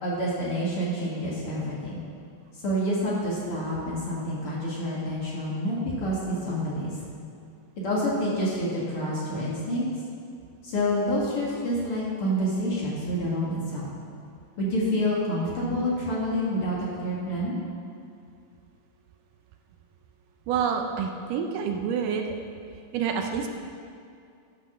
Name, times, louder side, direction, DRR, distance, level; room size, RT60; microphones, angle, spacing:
voice 1, 0.0-2.0 2.6-6.9 7.8-9.8 10.6-13.9 14.6-17.5, equal, 45° left, -6 dB, 2.5 m, -28 dB
voice 2, 20.5-22.3 22.9-23.5, right 7 dB, 80° right, 4 dB, 2.3 m, -27 dB
13.0 x 5.7 x 6.3 m, 2.4 s
omnidirectional pair, 3.9 m